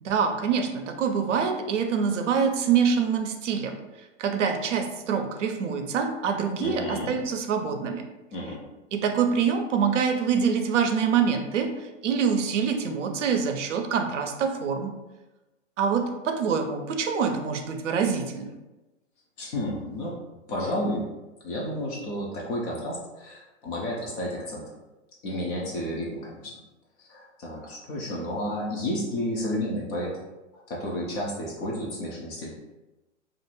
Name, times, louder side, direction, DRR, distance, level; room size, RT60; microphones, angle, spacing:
voice 1, 0.0-3.8 4.2-8.1 8.9-14.9 15.8-18.5, right 6 dB, 80° right, 5 dB, 0.6 m, -25 dB
voice 2, 6.6-7.1 8.3-8.6 19.4-20.1 20.5-21.0 21.4-24.6 25.2-26.6 27.0-30.2 30.5-32.5, left 1 dB, 20° left, -3 dB, 0.3 m, -31 dB
2.5 x 2.2 x 3.0 m, 1.1 s
hypercardioid pair, 125°, 36 cm